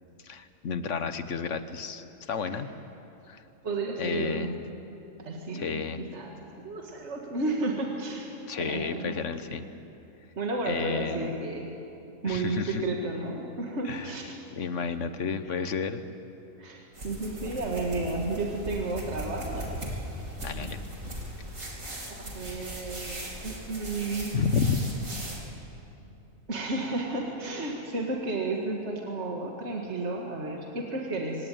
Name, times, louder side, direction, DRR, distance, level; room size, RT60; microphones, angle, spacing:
voice 1, 0.2-2.7 3.3-3.4 4.0-4.7 5.5-6.0 8.5-9.7 10.7-11.3 12.3-12.8 13.8-14.1 14.5-16.0 20.4-20.8 24.3-24.9, left 6 dB, 60° left, 11 dB, 1.3 m, -31 dB
voice 2, 3.6-4.6 5.2-6.4 6.6-8.3 8.6-9.1 10.4-11.7 12.2-14.4 16.6-20.0 20.4-20.7 22.1-24.5 26.5-31.5, right 2 dB, 55° right, 0 dB, 2.3 m, -32 dB
sound 1, 16.9-25.4, equal, 70° right, 3.8 m, -38 dB
25.5 x 18.0 x 9.3 m, 2.9 s
omnidirectional pair, 1.4 m